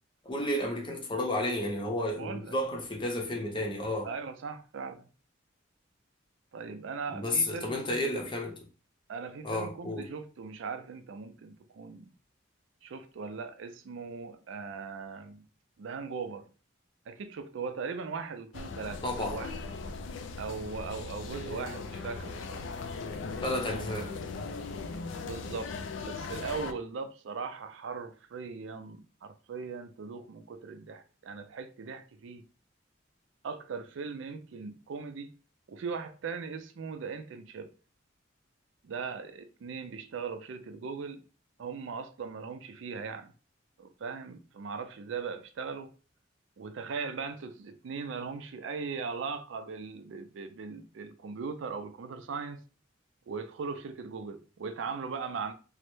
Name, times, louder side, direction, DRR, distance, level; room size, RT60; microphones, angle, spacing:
voice 1, 0.2-4.1 7.1-8.6 9.4-10.1 19.0-19.4 23.4-24.1, left 1 dB, 25° left, 0.6 m, -32 dB
voice 2, 2.0-2.6 4.0-5.0 6.5-8.1 9.1-12.1 12.8-15.4 15.8-16.5 17.1-19.6 20.4-22.7 23.7-24.2 25.2-25.7 26.0-32.4 33.4-35.3 35.7-37.7 38.8-41.2 41.6-43.3 43.8-45.9 46.6-52.6 53.3-55.5, right 5 dB, 70° right, 0.4 m, -39 dB
sound 1, 18.5-26.7, left 4 dB, 65° left, 0.3 m, -39 dB
3.2 x 2.0 x 3.0 m
head